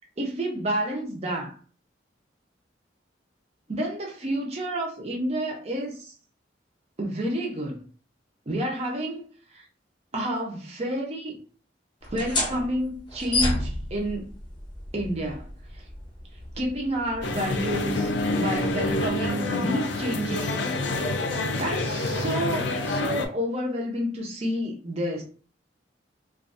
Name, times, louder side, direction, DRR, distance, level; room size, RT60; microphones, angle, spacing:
voice 1, 0.2-1.6 3.7-6.1 7.0-7.8 8.5-9.3 10.1-11.4 12.1-14.3 14.9-15.5 16.6-20.7 21.0-21.1 21.6-25.2, right 1 dB, 35° right, 0.6 m, -29 dB
sound 1, 12.0-19.3, left 2 dB, 25° left, 0.6 m, -33 dB
sound 2, 17.2-23.3, left 2 dB, 75° left, 0.4 m, -27 dB
2.5 x 2.3 x 2.5 m
head